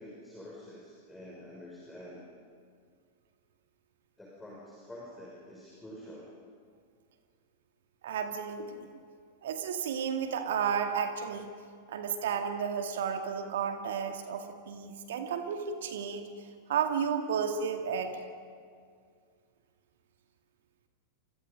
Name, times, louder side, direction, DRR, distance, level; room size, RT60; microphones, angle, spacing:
voice 1, 0.0-2.2 4.2-6.3, left 1 dB, 5° left, -4 dB, 5.8 m, -47 dB
voice 2, 8.0-8.9 9.4-11.5 11.9-16.2 16.7-18.2, right 7 dB, 60° right, 6 dB, 2.1 m, -32 dB
30.0 x 27.5 x 5.3 m, 2.2 s
figure-of-eight pair, 90°, 0 cm